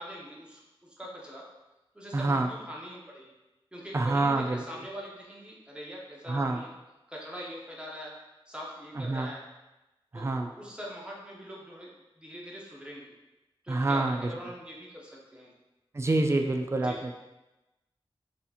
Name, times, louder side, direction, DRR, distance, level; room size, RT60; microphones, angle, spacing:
voice 1, 0.0-1.5 1.9-3.3 3.7-6.7 7.1-8.1 8.5-9.4 10.1-11.9 12.2-13.1 13.6-15.5 16.8-17.1, equal, 10° right, -4 dB, 0.8 m, -43 dB
voice 2, 2.1-2.5 3.9-4.6 6.3-6.6 9.0-9.3 10.1-10.5 13.7-14.3 15.9-17.1, right 2 dB, 25° right, 4 dB, 0.3 m, -27 dB
4.1 x 2.8 x 2.4 m, 1.0 s
wide cardioid pair, 80°, 10 cm